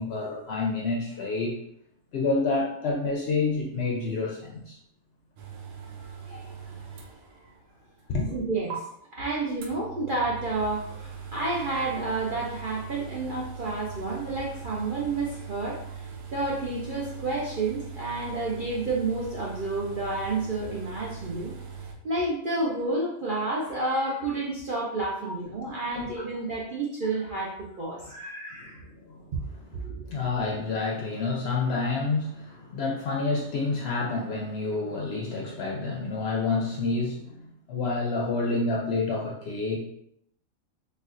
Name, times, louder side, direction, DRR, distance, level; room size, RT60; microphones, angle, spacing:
voice 1, 0.0-1.6 2.1-4.8 6.0-6.1 8.1-8.3 25.6-26.1 29.0-29.3 30.0-39.8, left 3 dB, 65° left, -1 dB, 0.7 m, -28 dB
sound 1, 5.4-7.7 8.0-8.1 8.7-8.8 9.6-21.9, right 6 dB, 90° right, 1.0 m, -41 dB
voice 2, 6.3-7.0 8.3-8.9 9.1-21.5 22.0-28.8 29.7-30.1, right 2 dB, 55° right, -4 dB, 0.6 m, -30 dB
4.2 x 2.4 x 2.4 m, 0.73 s
omnidirectional pair, 1.4 m